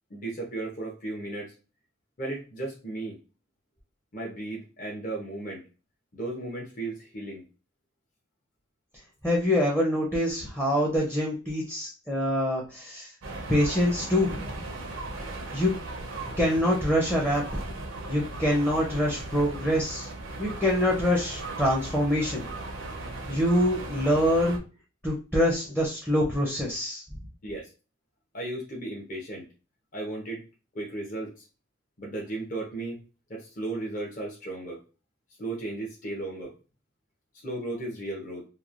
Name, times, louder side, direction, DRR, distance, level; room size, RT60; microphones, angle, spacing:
voice 1, 0.1-1.5 2.2-3.2 4.1-5.6 6.1-7.4 27.4-27.7 28.3-29.5 29.9-30.4 30.7-31.4 32.0-33.0 33.3-34.8 35.4-36.5 37.4-38.4, right 2 dB, 45° left, -2 dB, 0.7 m, -35 dB
voice 2, 9.2-13.1 13.5-14.5 15.5-15.7 16.4-17.4 18.1-20.1 20.4-22.5 23.3-24.6 25.0-27.0, equal, 5° left, -3 dB, 0.5 m, -25 dB
sound 1, 13.2-24.6, right 2 dB, 80° right, 0.6 m, -37 dB
3.0 x 2.1 x 2.4 m, 0.33 s
head